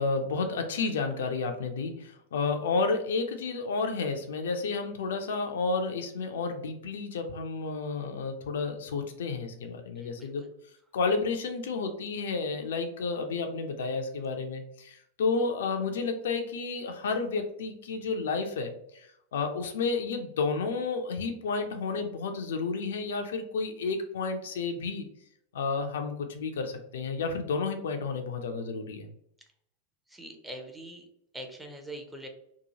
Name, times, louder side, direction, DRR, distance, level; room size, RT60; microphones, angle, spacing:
voice 1, 0.0-10.4 10.9-25.1 25.5-29.1, left 4 dB, 60° left, 5 dB, 0.3 m, -31 dB
voice 2, 9.9-10.5 30.1-31.1 31.3-32.3, right 1 dB, 5° right, 2 dB, 0.5 m, -43 dB
2.8 x 2.2 x 2.7 m, 0.74 s
figure-of-eight pair, 90°, 0 cm